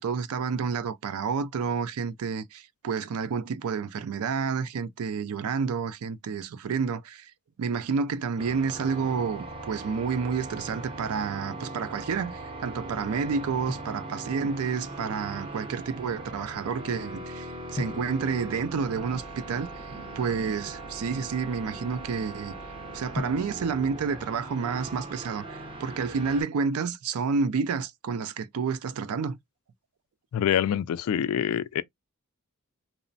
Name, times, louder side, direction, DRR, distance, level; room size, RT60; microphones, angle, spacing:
voice 1, 0.0-7.3 7.6-22.5 22.9-29.4, right 5 dB, 85° right, 0.4 m, -30 dB
sound 1, 8.4-26.4, right 2 dB, 25° right, 0.6 m, -40 dB
Drum, 23.1-25.1, left 1 dB, 20° left, 0.5 m, -40 dB
voice 2, 30.3-31.8, left 9 dB, 80° left, 0.3 m, -25 dB
2.9 x 2.0 x 2.6 m
head